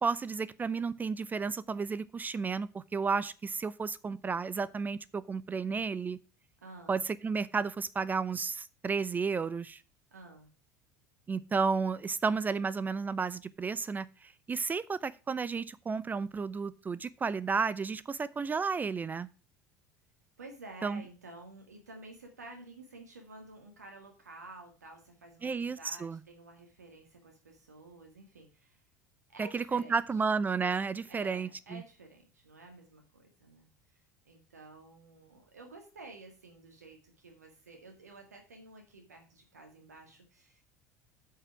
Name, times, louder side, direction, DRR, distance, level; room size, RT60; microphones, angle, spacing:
voice 1, 0.0-6.2 6.9-9.8 11.3-19.3 20.8-21.0 25.4-26.2 29.4-31.8, right 5 dB, 20° right, 19 dB, 0.5 m, -32 dB
voice 2, 6.6-7.0 10.1-10.5 20.4-28.8 29.3-30.0 31.1-33.7 34.2-40.6, right 2 dB, 80° right, 4 dB, 1.7 m, -51 dB
8.4 x 5.7 x 5.8 m, 0.34 s
figure-of-eight pair, 70°, 9 cm